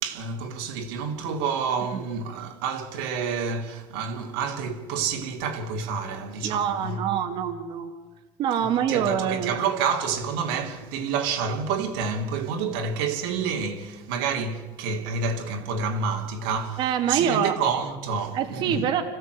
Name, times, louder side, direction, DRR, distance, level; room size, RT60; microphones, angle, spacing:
voice 1, 0.0-7.1 8.6-18.9, right 5 dB, 85° right, 2.9 m, -29 dB
voice 2, 6.4-7.9 8.4-9.5 16.8-17.5 18.3-19.0, right 9 dB, 45° right, 1.8 m, -25 dB
26.0 x 16.0 x 8.0 m
cardioid pair, 165°, 11 cm